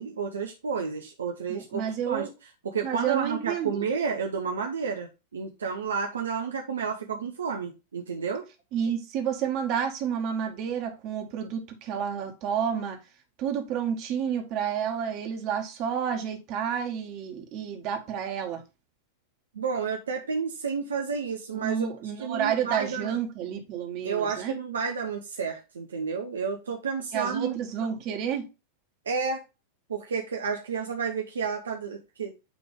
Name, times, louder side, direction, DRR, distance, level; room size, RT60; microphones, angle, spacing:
voice 1, 0.0-2.3 2.6-8.4 19.5-21.9 22.2-23.1 24.0-27.6 29.1-29.4 29.9-32.3, right 6 dB, 70° right, 0.8 m, -31 dB
voice 2, 1.5-2.3 2.8-3.9 7.1-7.2 8.7-13.0 13.4-18.6 21.5-24.6 27.1-28.5, right 8 dB, 40° right, 1.8 m, -30 dB
9.1 x 3.4 x 3.6 m
figure-of-eight pair, 90°, 0 cm